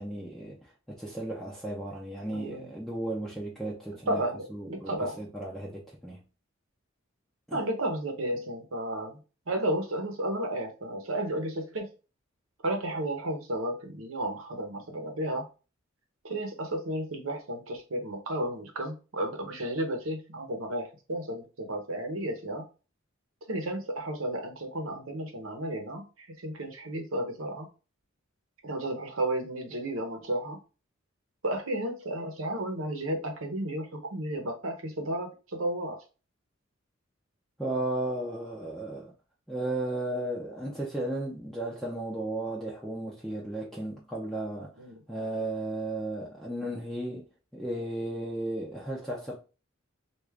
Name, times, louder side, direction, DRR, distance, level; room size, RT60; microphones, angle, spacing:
voice 1, 0.0-4.2 4.5-6.2 7.5-7.7 37.6-39.1 39.5-44.7 45.1-49.4, right 1 dB, ahead, 0.6 m, -35 dB
voice 2, 2.3-2.7 4.1-5.2 7.5-9.2 9.5-11.9 12.6-15.4 16.2-22.6 23.5-27.7 28.6-30.6 31.4-36.0 44.8-45.0, right 1 dB, 80° right, 0.9 m, -33 dB
3.5 x 2.5 x 3.4 m
head